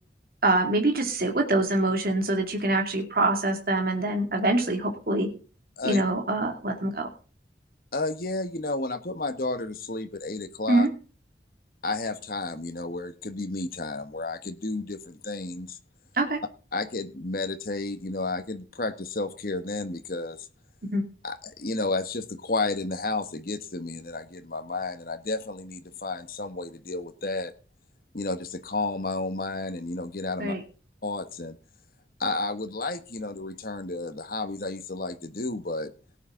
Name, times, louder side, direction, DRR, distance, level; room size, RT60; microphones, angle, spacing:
voice 1, 0.4-5.3 5.8-7.1 10.7-10.9 16.2-16.4 20.9-21.1 30.4-30.6, right 2 dB, 55° right, 3 dB, 2.5 m, -24 dB
voice 2, 7.9-10.9 11.8-15.8 16.7-20.5 21.2-27.5 28.1-30.5 31.0-31.6 32.2-35.9, left 2 dB, 50° left, 9 dB, 1.3 m, -32 dB
18.0 x 8.5 x 3.8 m, 0.37 s
head